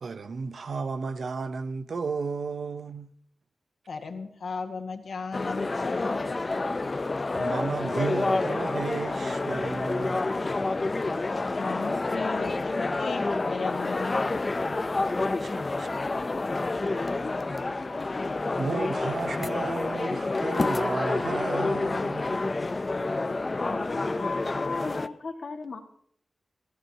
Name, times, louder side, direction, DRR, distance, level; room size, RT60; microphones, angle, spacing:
voice 1, 0.0-3.1 6.8-6.9 7.4-10.2 15.3-16.0 18.6-22.4, right 4 dB, 75° right, 0.9 m, -33 dB
voice 2, 3.9-6.4 11.6-14.2 15.2-15.3, left 4 dB, 85° left, 1.9 m, -35 dB
sound 1, 5.3-25.1, left 3 dB, 35° left, 0.7 m, -28 dB
voice 3, 23.7-25.8, left 3 dB, 65° left, 2.0 m, -35 dB
27.0 x 15.5 x 3.0 m
wide cardioid pair, 125°, 0 cm